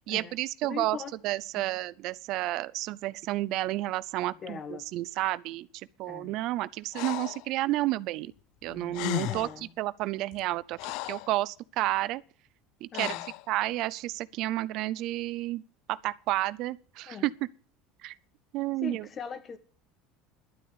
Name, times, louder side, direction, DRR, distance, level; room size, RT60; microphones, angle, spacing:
voice 1, 0.1-1.0 1.2-4.6 4.9-5.7 6.0-8.3 8.6-9.5 9.8-10.8 11.0-12.2 12.8-13.1 13.5-15.6 15.9-17.3 18.0-18.1 18.5-19.1, right 16 dB, 60° right, 0.6 m, -31 dB
voice 2, 0.6-1.1 1.5-1.6 4.4-4.9 6.0-6.4 8.7-9.0 9.3-9.7 12.9-13.2 17.1-17.3 18.8-19.6, left 6 dB, 30° left, 1.7 m, -40 dB
Breathing, 6.9-7.5 8.6-8.7 8.9-9.6 10.3-11.3 12.9-13.4, left 18 dB, 65° left, 0.6 m, -35 dB
12.0 x 8.5 x 7.9 m
supercardioid pair, 125°, 0 cm